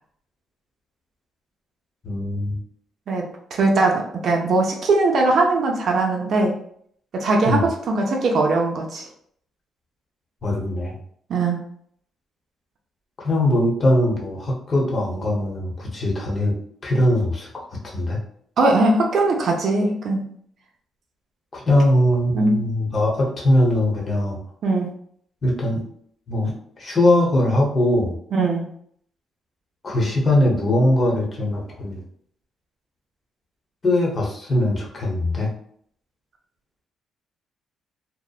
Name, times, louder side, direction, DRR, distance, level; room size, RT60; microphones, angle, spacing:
voice 1, 2.0-2.6 7.4-7.6 10.4-10.9 13.2-16.5 16.8-18.2 21.5-24.4 25.4-25.8 26.3-28.1 29.8-32.0 33.8-35.5, left 1 dB, 40° left, -1 dB, 0.8 m, -21 dB
voice 2, 3.1-6.5 7.1-9.1 11.3-11.6 18.6-20.3 22.3-22.6 24.6-24.9 28.3-28.7, right 2 dB, 60° right, 1 dB, 0.5 m, -20 dB
2.8 x 2.0 x 2.3 m, 0.64 s
cardioid pair, 90°, 0 cm